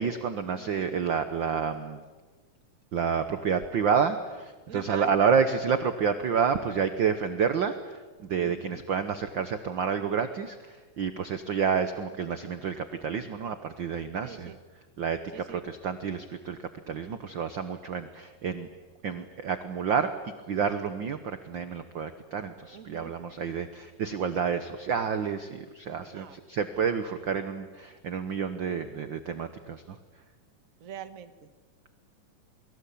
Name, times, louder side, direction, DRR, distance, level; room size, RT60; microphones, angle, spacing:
voice 1, 0.0-2.0 2.9-14.5 15.0-18.7 19.0-30.0, right 6 dB, 65° right, 9 dB, 1.2 m, -29 dB
voice 2, 4.7-5.4 8.4-8.8 14.2-14.6 15.3-15.6 22.7-23.1 26.0-26.4 30.8-31.5, right 8 dB, 45° right, 10 dB, 1.1 m, -44 dB
29.5 x 23.0 x 8.6 m, 1.3 s
omnidirectional pair, 3.7 m